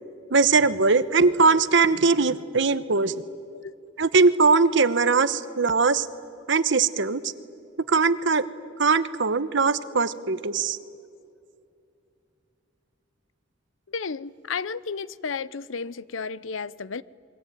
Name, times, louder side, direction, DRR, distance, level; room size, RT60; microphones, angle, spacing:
voice 1, 0.3-3.1 4.0-6.1 6.5-7.3 7.9-8.4 8.8-10.8, right 4 dB, 65° right, 1.0 m, -21 dB
voice 2, 13.9-17.0, left 5 dB, 80° left, 0.7 m, -33 dB
28.5 x 22.5 x 9.2 m
head